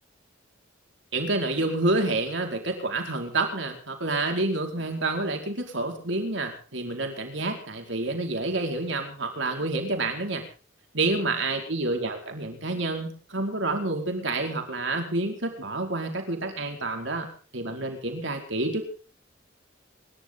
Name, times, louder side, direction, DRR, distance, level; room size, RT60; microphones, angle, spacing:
voice 1, 1.1-10.4 10.9-17.3 17.5-18.8, right 2 dB, 65° right, 3 dB, 4.8 m, -28 dB
27.5 x 12.5 x 3.9 m, 0.39 s
head